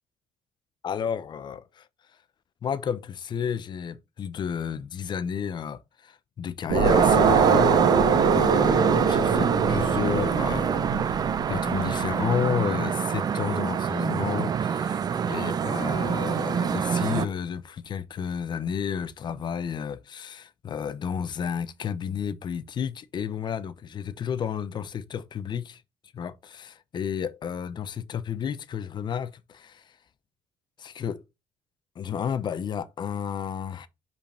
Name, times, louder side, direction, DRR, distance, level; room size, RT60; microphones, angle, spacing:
voice 1, 0.8-1.9 2.6-25.8 26.1-29.9 30.8-31.2 32.0-33.9, left 7 dB, 40° left, 0.7 m, -32 dB
sound 1, 6.7-12.0, right 5 dB, 75° right, 1.4 m, -23 dB
sound 2, 6.8-17.3, right 7 dB, 35° right, 0.4 m, -26 dB
5.3 x 5.1 x 4.3 m
cardioid pair, 135°, 12 cm